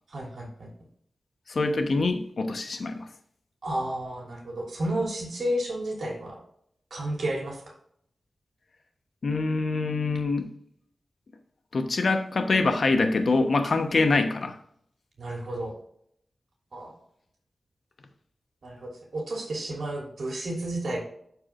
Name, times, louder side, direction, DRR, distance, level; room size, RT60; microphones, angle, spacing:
voice 1, 0.1-0.7 3.6-6.4 6.9-7.7 15.2-15.7 16.7-16.9 18.6-21.0, right 1 dB, 75° right, -1 dB, 3.1 m, -32 dB
voice 2, 1.5-3.1 9.2-10.5 11.7-14.6, left 3 dB, 65° left, 6 dB, 1.0 m, -25 dB
12.5 x 4.8 x 2.5 m, 0.67 s
wide cardioid pair, 130°, 0 cm